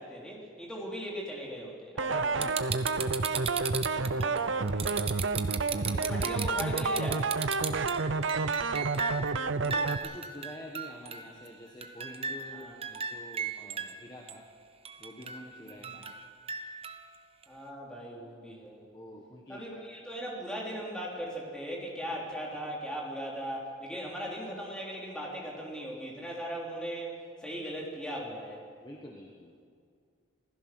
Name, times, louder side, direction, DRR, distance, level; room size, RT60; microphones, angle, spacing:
voice 1, 0.0-2.8 5.9-7.3 12.5-12.8 15.7-16.0 17.5-18.8 19.5-28.6, equal, 5° left, -3 dB, 3.7 m, -39 dB
sound 1, 2.0-10.0, right 3 dB, 65° right, 0.7 m, -30 dB
sound 2, 2.4-9.3 9.6-11.5 11.8-14.0 14.3-14.4 14.8-17.0 17.4-17.5, right 6 dB, 30° right, 0.9 m, -36 dB
voice 2, 3.6-4.9 5.7-6.3 7.7-8.0 9.6-14.5 15.0-16.2 18.9-19.6 28.8-29.5, left 1 dB, 20° left, 0 dB, 1.4 m, -48 dB
26.0 x 16.0 x 6.1 m, 2.2 s
head